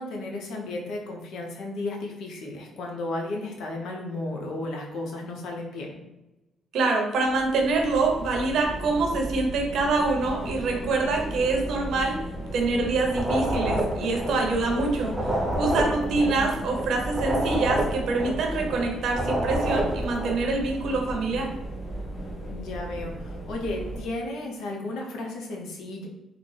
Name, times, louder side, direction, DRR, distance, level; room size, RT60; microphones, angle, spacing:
voice 1, 0.0-5.9 16.0-16.4 22.5-26.1, left 2 dB, 85° left, 0 dB, 0.7 m, -34 dB
voice 2, 6.7-12.2 12.5-21.5, right 3 dB, 75° right, 2 dB, 0.7 m, -25 dB
sound 1, 7.2-24.0, right 1 dB, 30° left, 1.0 m, -36 dB
sound 2, 13.1-14.8 15.1-18.8 19.1-20.4, right 1 dB, 15° right, 0.7 m, -28 dB
3.9 x 2.1 x 3.3 m, 1.0 s
cardioid pair, 90°, 0 cm